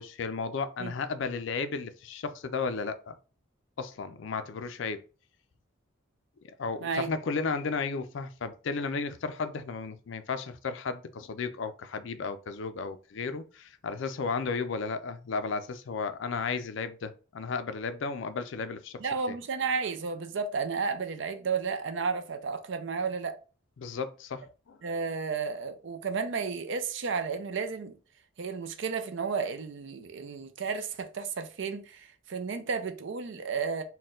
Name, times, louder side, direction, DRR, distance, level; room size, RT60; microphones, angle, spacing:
voice 1, 0.0-3.2 3.8-5.0 6.6-19.0 19.3-19.4 23.8-24.8, left 4 dB, 60° left, 0.4 m, -34 dB
voice 2, 19.0-23.4 24.8-28.0 28.4-33.8, right 5 dB, 60° right, 0.5 m, -32 dB
4.1 x 2.2 x 3.6 m
head